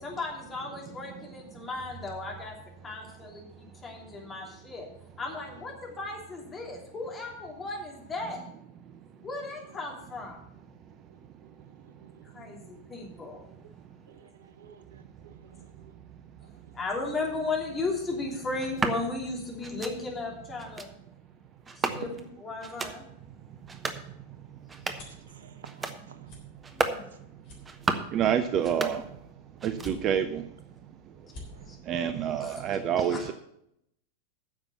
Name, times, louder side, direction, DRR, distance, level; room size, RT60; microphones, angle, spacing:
voice 1, 0.0-2.5 2.8-4.9 5.2-8.4 9.2-10.4 12.3-13.4 16.7-20.9 21.8-22.1 22.4-23.1 26.7-27.0 31.7-31.8 32.3-32.6 33.0-33.3, left 3 dB, 20° left, 3.0 m, -35 dB
voice 2, 11.6-12.7 13.6-13.7 14.1-15.9 16.4-16.7 21.9-22.0 25.1-26.3 31.5-31.7, right 6 dB, 65° right, 0.8 m, -53 dB
sound 1, 18.6-19.0 19.6-19.9 20.6-20.9 21.6-22.3 22.6-23.0 23.6-24.0 24.6-25.1 25.6-26.0 26.6-27.0 27.6-28.2 28.6-29.3 29.6-30.2, right 4 dB, 15° right, 1.0 m, -33 dB
sound 2, 23.7-25.3 25.8-26.0 26.2-26.4 26.9-27.0 27.4-28.2 28.6-29.3 29.7-30.4 30.8-30.9 31.2-31.5, left 2 dB, 45° left, 3.8 m, -47 dB
voice 3, 28.1-29.0 29.6-30.4 31.9-33.3, right 8 dB, 35° right, 0.6 m, -27 dB
9.7 x 7.1 x 6.9 m
figure-of-eight pair, 90°, 0 cm